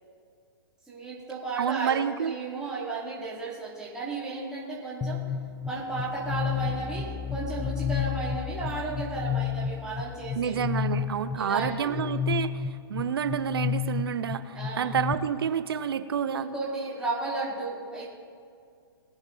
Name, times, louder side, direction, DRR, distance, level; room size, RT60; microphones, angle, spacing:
voice 1, 0.9-2.0 2.2-5.2 5.6-10.6 11.3-12.0 14.5-15.0 16.3-18.1, right 3 dB, 5° right, -7 dB, 2.7 m, -34 dB
voice 2, 1.6-2.3 10.4-12.6 12.9-16.5, right 8 dB, 70° right, 12 dB, 0.8 m, -29 dB
sound 1, 5.0-15.1, left 8 dB, 10° left, 0.9 m, -31 dB
21.0 x 7.2 x 4.0 m, 2.2 s
hypercardioid pair, 125°, 13 cm